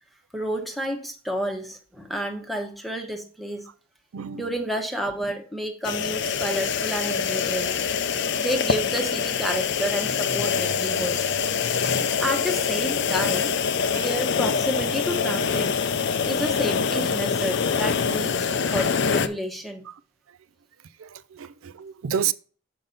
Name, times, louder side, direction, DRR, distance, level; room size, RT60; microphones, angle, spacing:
voice 1, 0.3-3.7 4.3-7.8 8.4-11.3 12.2-13.5 14.0-15.7 16.0-19.8, equal, ahead, 1.0 m, -30 dB
sound 1, 5.8-19.3, left 6 dB, 55° left, 0.5 m, -25 dB
voice 2, 21.4-22.3, right 8 dB, 75° right, 0.4 m, -29 dB
7.0 x 5.4 x 3.9 m
head